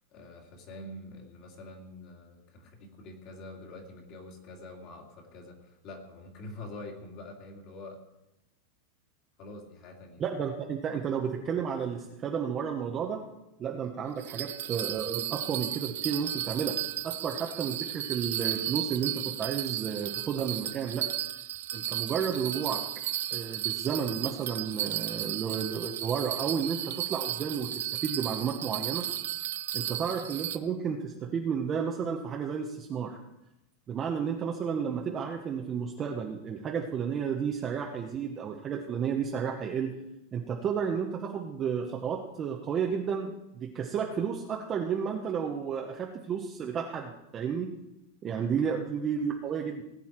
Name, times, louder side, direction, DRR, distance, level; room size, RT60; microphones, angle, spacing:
voice 1, 0.1-8.0 9.4-10.2, left 2 dB, 35° left, 1 dB, 2.6 m, -46 dB
voice 2, 10.2-13.2 13.6-16.8 17.0-21.1 21.7-22.8 23.3-29.0 29.7-33.2 33.9-39.9 40.3-47.8 48.2-49.8, right 7 dB, 20° right, 1 dB, 0.9 m, -32 dB
Bell, 14.2-30.6, right 13 dB, 70° right, 0.8 m, -34 dB
19.0 x 9.3 x 4.5 m, 0.90 s
supercardioid pair, 175°, 0 cm